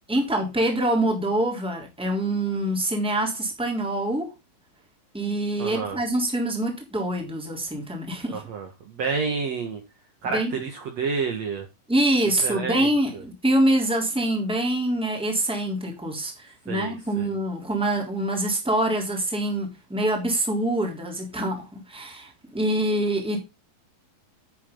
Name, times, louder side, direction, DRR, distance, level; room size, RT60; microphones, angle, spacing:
voice 1, 0.1-4.3 5.1-8.4 10.2-10.6 11.9-23.4, right 1 dB, ahead, 3.0 m, -25 dB
voice 2, 5.6-6.0 8.3-9.8 10.2-11.7 12.4-13.2 16.7-17.3, right 5 dB, 55° right, 2.5 m, -30 dB
11.0 x 8.5 x 3.9 m
omnidirectional pair, 4.1 m